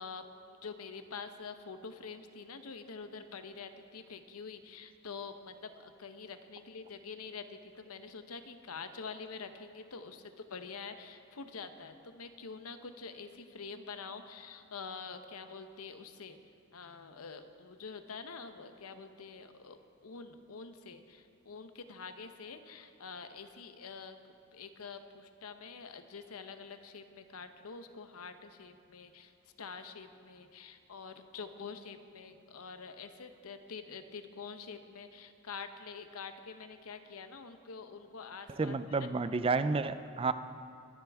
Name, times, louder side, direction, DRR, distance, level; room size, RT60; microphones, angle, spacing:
voice 1, 0.0-16.4 16.7-24.2 24.5-29.3 29.6-39.1, left 5 dB, 85° left, 8 dB, 0.8 m, -46 dB
voice 2, 38.6-40.3, right 4 dB, 25° right, 12 dB, 0.3 m, -30 dB
23.5 x 10.5 x 3.5 m, 2.5 s
head